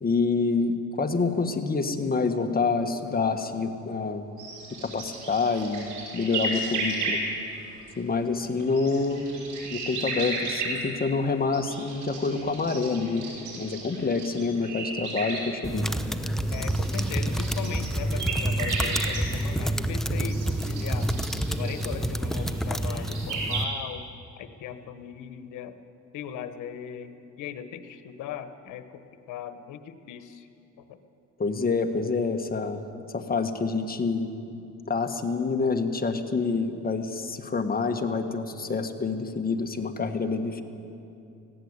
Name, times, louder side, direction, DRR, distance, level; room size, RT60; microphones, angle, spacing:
voice 1, 0.0-4.2 4.8-7.2 8.0-9.3 9.7-13.3 13.5-15.9 31.4-32.8 33.1-34.3 34.9-40.6, left 4 dB, 30° left, 6 dB, 1.7 m, -27 dB
sound 1, 4.4-7.7 8.4-10.8 11.5-15.5 15.9-16.0 16.5-19.2 19.6-23.6, right 3 dB, 75° right, 5.8 m, -34 dB
sound 2, 15.6-23.6, right 1 dB, ahead, 1.0 m, -28 dB
voice 2, 16.5-21.1 21.6-24.0 24.4-25.7 26.1-29.0 29.3-30.5 30.9-31.0, left 9 dB, 90° left, 10 dB, 1.2 m, -38 dB
19.5 x 16.0 x 8.3 m, 2.7 s
cardioid pair, 90°, 30 cm